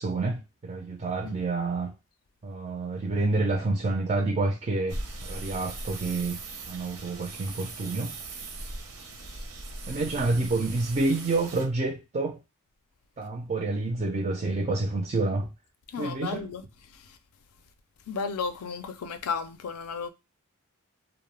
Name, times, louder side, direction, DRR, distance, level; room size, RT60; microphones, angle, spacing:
voice 1, 0.0-1.9 2.4-6.4 6.7-8.1 9.9-12.4 13.2-15.5 16.0-16.4, right 3 dB, 30° right, 0.3 m, -28 dB
sound 1, 4.9-11.6, right 2 dB, 75° right, 0.6 m, -39 dB
voice 2, 9.1-9.4 15.9-16.6 16.9-17.2 18.1-20.1, left 5 dB, 80° left, 0.4 m, -34 dB
2.2 x 2.0 x 3.1 m
head